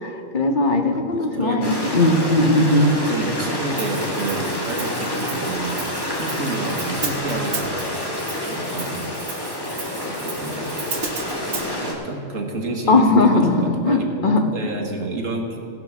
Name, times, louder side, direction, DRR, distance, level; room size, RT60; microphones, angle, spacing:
voice 1, 0.0-2.9 12.9-14.4, left 2 dB, 40° left, 4 dB, 1.1 m, -18 dB
voice 2, 0.9-2.0 2.9-5.9 6.2-7.9 8.2-9.0 10.0-10.8 11.3-15.6, right 2 dB, 85° right, 2 dB, 1.8 m, -30 dB
Stream, 1.6-11.9, left 1 dB, 20° left, 1.6 m, -28 dB
Hi-hat, 3.8-11.7, right 4 dB, 55° right, 1.4 m, -34 dB
17.0 x 6.1 x 5.9 m, 2.6 s
omnidirectional pair, 1.3 m